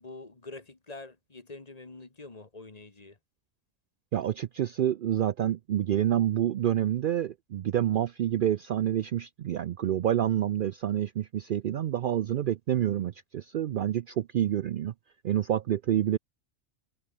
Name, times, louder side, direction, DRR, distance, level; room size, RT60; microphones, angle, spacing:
voice 1, 0.0-3.2, left 3 dB, 35° left, 1.8 m, -45 dB
voice 2, 4.1-14.9 15.2-16.2, right 11 dB, 60° right, 0.6 m, -28 dB
omnidirectional pair, 1.2 m